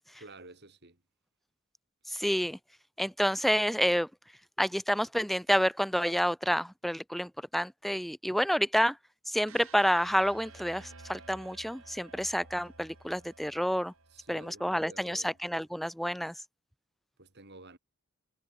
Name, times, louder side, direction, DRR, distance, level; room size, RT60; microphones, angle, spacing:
voice 1, 0.2-1.0 14.1-15.4 17.2-17.8, right 2 dB, 50° right, 4.1 m, -51 dB
voice 2, 2.1-2.6 3.0-4.1 4.6-9.0 9.3-13.9 14.3-16.3, equal, ahead, 2.4 m, -29 dB
sound 1, 9.5-15.5, right 3 dB, 70° right, 7.3 m, -54 dB
head